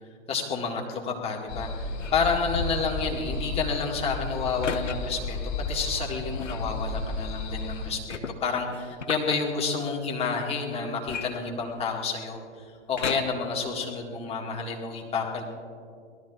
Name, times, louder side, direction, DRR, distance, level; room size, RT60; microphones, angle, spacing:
voice 1, 0.3-1.7 2.1-5.4 5.7-12.4 12.9-15.4, left 5 dB, 15° left, 0 dB, 1.9 m, -29 dB
sound 1, 1.5-7.9, left 3 dB, 35° left, 2.4 m, -33 dB
sound 2, 1.9-2.3 4.6-5.0 6.4-6.7 8.1-9.4 11.0-12.0 13.0-13.5 14.2-14.3, left 5 dB, 85° left, 1.0 m, -36 dB
25.0 x 18.5 x 2.5 m, 2.2 s
figure-of-eight pair, 115°, 36 cm